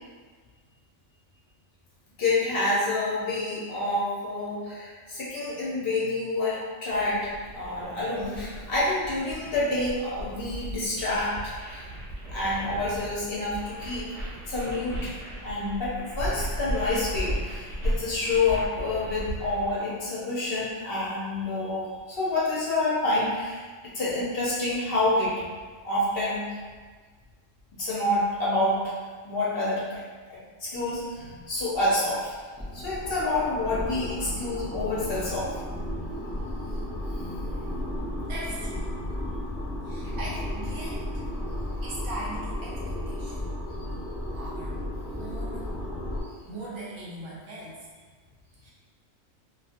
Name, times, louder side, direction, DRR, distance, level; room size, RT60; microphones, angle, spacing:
voice 1, 2.2-11.8 12.3-14.2 14.5-15.1 15.4-23.6 23.9-25.3 25.8-26.6 27.8-28.9 29.2-30.0 30.6-32.4 32.7-35.5, left 2 dB, 55° left, -7 dB, 0.8 m, -28 dB
sound 1, 6.9-19.8, equal, 50° right, 1.0 m, -36 dB
sound 2, 31.4-31.5 31.7-31.9 32.3-46.2, left 1 dB, 15° right, 0.4 m, -34 dB
voice 2, 38.3-38.9 39.8-41.2 41.8-43.5 44.3-44.8 45.2-45.7 46.4-47.9 48.6-48.7, right 1 dB, 70° right, -6 dB, 1.1 m, -39 dB
2.7 x 2.5 x 2.4 m, 1.5 s
omnidirectional pair, 1.3 m